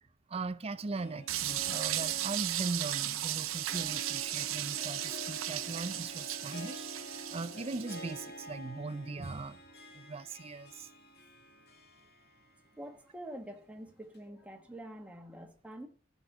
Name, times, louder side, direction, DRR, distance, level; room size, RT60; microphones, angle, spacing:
voice 1, 0.3-9.6 9.9-10.9, right 3 dB, 30° right, 0.5 m, -39 dB
Harp, 0.7-12.8 13.2-13.3 14.1-14.2, equal, 50° left, 1.8 m, -48 dB
sound 1, 1.3-8.1, right 13 dB, 80° right, 0.7 m, -36 dB
voice 2, 12.8-15.9, right 1 dB, 5° right, 1.2 m, -46 dB
13.5 x 5.1 x 6.0 m
head